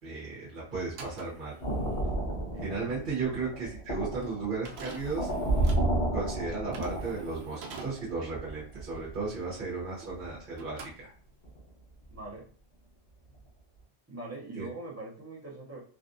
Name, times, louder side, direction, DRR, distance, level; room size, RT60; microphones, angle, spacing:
voice 1, 0.0-1.6 2.6-5.3 6.1-11.1 14.6-14.7, right 4 dB, 50° right, -6 dB, 1.1 m, -35 dB
sound 1, 0.9-10.3 10.5-11.6, right 4 dB, 70° right, 0.8 m, -48 dB
sound 2, 1.6-7.5 7.8-9.2 10.1-10.4 10.8-10.9 11.4-11.7 12.0-12.2, right 1 dB, 80° left, 1.4 m, -32 dB
voice 2, 12.1-12.5 14.1-15.8, right 2 dB, 15° right, -3 dB, 0.7 m, -42 dB
3.4 x 2.4 x 2.6 m, 0.43 s
omnidirectional pair, 1.1 m